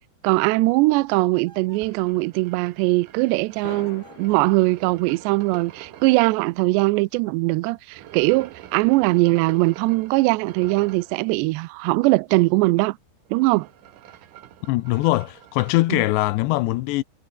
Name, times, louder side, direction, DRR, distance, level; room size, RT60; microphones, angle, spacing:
voice 1, 0.2-13.0 13.3-13.7 15.9-16.0, right 22 dB, 80° right, 2.6 m, -21 dB
sound 1, 1.1-1.9 3.5-4.5, right 5 dB, 40° right, 5.6 m, -53 dB
sound 2, 1.7-6.3 7.9-11.1 13.2-15.8, right 12 dB, 65° right, 2.1 m, -45 dB
sound 3, 1.8-2.6 2.9-3.0 3.6-6.7, left 4 dB, 55° left, 9.4 m, -46 dB
voice 2, 14.7-17.0, left 18 dB, 80° left, 2.7 m, -22 dB
omnidirectional pair, 5.4 m